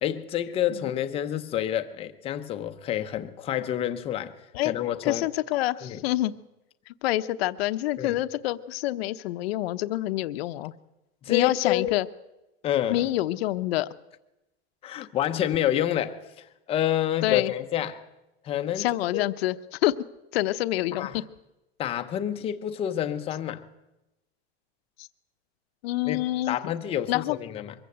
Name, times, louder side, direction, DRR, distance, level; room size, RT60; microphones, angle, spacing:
voice 1, 0.0-4.3 4.6-5.3 5.8-6.0 8.0-8.2 11.2-12.0 12.6-13.1 14.8-18.0 18.4-19.3 20.9-21.2 21.8-23.6 26.0-27.7, left 11 dB, 15° left, 0.7 m, -28 dB
voice 2, 5.0-6.3 7.0-10.7 11.3-12.1 12.9-13.9 17.2-17.5 18.8-19.9 20.3-21.2 25.0-25.1 25.8-26.6 27.1-27.4, left 16 dB, 60° left, 0.8 m, -27 dB
23.5 x 15.0 x 7.9 m
supercardioid pair, 170°, 34 cm